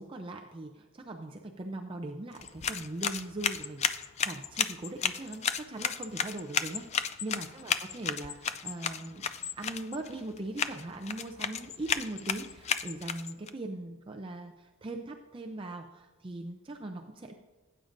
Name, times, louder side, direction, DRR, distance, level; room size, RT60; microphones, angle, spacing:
voice 1, 0.0-9.3 9.6-17.3, right 2 dB, 25° right, 3 dB, 0.5 m, -40 dB
sound 1, 2.3-13.5, left 7 dB, 30° left, 0.3 m, -34 dB
17.5 x 8.7 x 2.6 m, 1.2 s
head